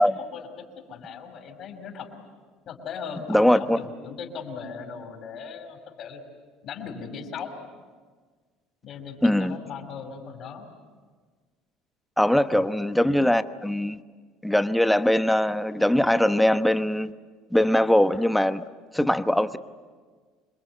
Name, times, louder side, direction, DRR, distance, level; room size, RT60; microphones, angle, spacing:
voice 1, 0.0-2.1 2.7-6.2 6.6-7.5 8.8-10.7 12.5-12.6, left 6 dB, 50° left, 4 dB, 5.2 m, -38 dB
voice 2, 3.3-3.8 9.2-9.6 12.2-14.0 14.4-17.1 17.5-18.6 18.9-19.6, left 1 dB, 5° left, 10 dB, 1.0 m, -21 dB
27.0 x 21.5 x 9.2 m, 1.5 s
supercardioid pair, 110°, 0 cm